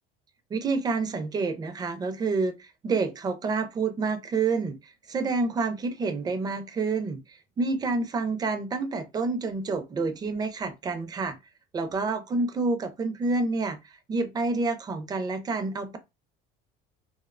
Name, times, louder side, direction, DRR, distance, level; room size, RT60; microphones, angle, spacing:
voice 1, 0.5-11.4 11.7-16.0, right 3 dB, 20° right, 0.4 m, -28 dB
2.7 x 2.1 x 2.4 m
cardioid pair, 130°, 19 cm